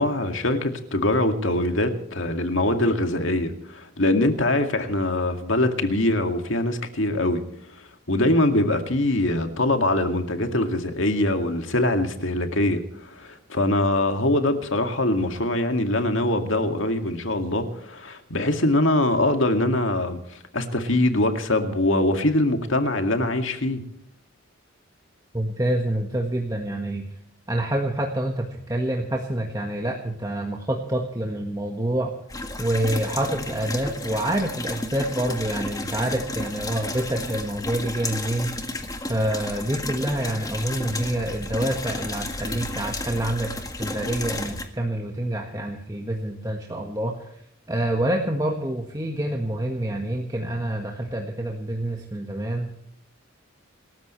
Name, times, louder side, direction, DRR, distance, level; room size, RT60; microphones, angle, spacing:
voice 1, 0.0-7.4 8.1-23.8, left 1 dB, 65° left, 6 dB, 2.2 m, -23 dB
voice 2, 25.3-27.0 27.5-32.2 32.6-38.8 39.1-47.4 47.7-52.7, right 1 dB, 15° right, 1 dB, 1.5 m, -27 dB
sound 1, 32.3-44.7, left 2 dB, 15° left, 1.7 m, -33 dB
27.0 x 14.0 x 3.2 m, 0.73 s
head